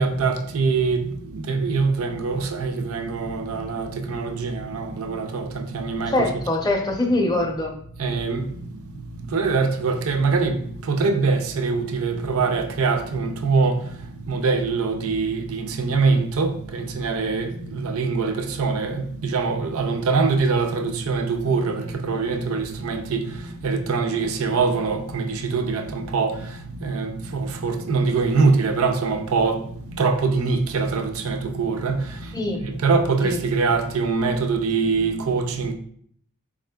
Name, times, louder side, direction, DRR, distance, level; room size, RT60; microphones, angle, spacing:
voice 1, 0.0-6.4 8.0-8.5 9.3-10.6 10.8-13.8 14.3-23.3 23.6-26.5 26.8-29.6 29.9-32.2 32.6-35.7, right 4 dB, 65° right, 0.4 m, -23 dB
voice 2, 6.1-7.7 32.3-32.6 33.2-33.4, left 2 dB, 15° left, 0.5 m, -23 dB
4.2 x 3.6 x 2.2 m
head